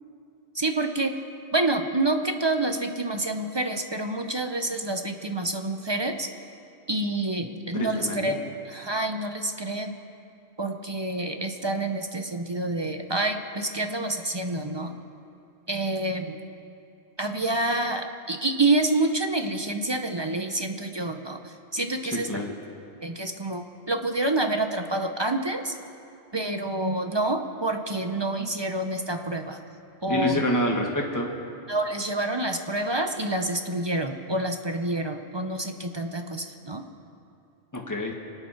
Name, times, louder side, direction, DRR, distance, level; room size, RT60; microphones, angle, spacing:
voice 1, 0.5-1.2 1.5-6.3 6.9-8.4 8.6-10.0 10.6-15.0 15.7-16.4 17.2-22.5 23.0-25.8 26.3-29.6 30.0-30.4 31.7-36.8, right 2 dB, 25° right, 5 dB, 0.7 m, -28 dB
voice 2, 7.7-8.2 22.1-22.5 30.1-31.3 37.7-38.1, left 1 dB, 15° left, -1 dB, 1.6 m, -27 dB
25.5 x 8.9 x 5.8 m, 2.6 s
omnidirectional pair, 1.2 m